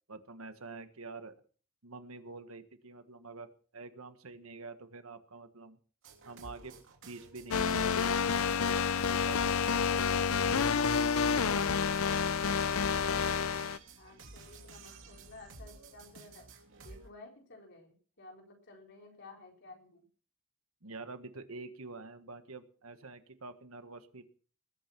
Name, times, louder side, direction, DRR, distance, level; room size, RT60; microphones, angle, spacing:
voice 1, 0.1-1.4 1.8-5.8 6.2-6.7 7.0-11.6 20.8-24.2, right 3 dB, 90° right, 9 dB, 1.6 m, -47 dB
sound 1, 6.0-17.1, right 3 dB, 65° right, 3.1 m, -52 dB
sound 2, 7.5-13.8, left 6 dB, 80° left, 0.7 m, -29 dB
voice 2, 14.0-16.5 16.8-20.1, left 2 dB, 55° left, 1 dB, 4.6 m, -54 dB
20.5 x 8.7 x 6.1 m, 0.43 s
head